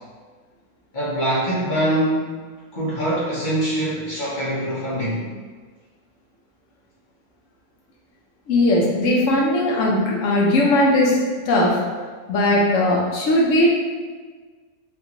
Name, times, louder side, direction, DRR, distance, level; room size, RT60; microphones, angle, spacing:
voice 1, 0.9-2.4 2.7-5.3, right 1 dB, 45° left, -7 dB, 0.7 m, -23 dB
voice 2, 8.5-11.1 11.5-11.8 12.3-13.7, left 1 dB, 65° left, -3 dB, 1.0 m, -18 dB
3.5 x 2.5 x 2.9 m, 1.5 s
omnidirectional pair, 1.6 m